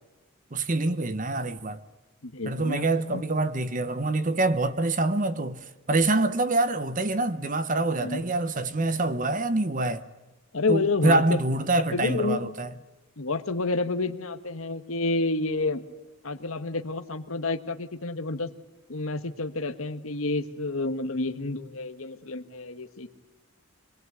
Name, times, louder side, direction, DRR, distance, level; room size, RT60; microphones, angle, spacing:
voice 1, 0.5-1.8 2.4-10.1 10.7-12.7, right 2 dB, 35° right, 0.9 m, -26 dB
voice 2, 2.2-3.2 8.0-8.2 10.5-11.2 11.9-12.4 13.2-15.8 16.2-18.5 18.9-23.2, left 3 dB, 75° left, 1.4 m, -29 dB
26.0 x 19.5 x 8.2 m
head